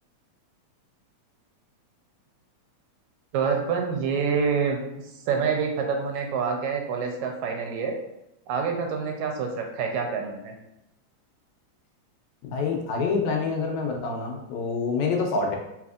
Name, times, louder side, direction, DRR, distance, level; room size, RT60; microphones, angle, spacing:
voice 1, 3.3-4.8 5.3-7.9 8.5-10.5, right 5 dB, 80° right, 3 dB, 1.9 m, -27 dB
voice 2, 12.4-15.6, left 4 dB, 80° left, 1 dB, 1.9 m, -26 dB
4.2 x 4.1 x 2.4 m, 0.85 s
omnidirectional pair, 3.4 m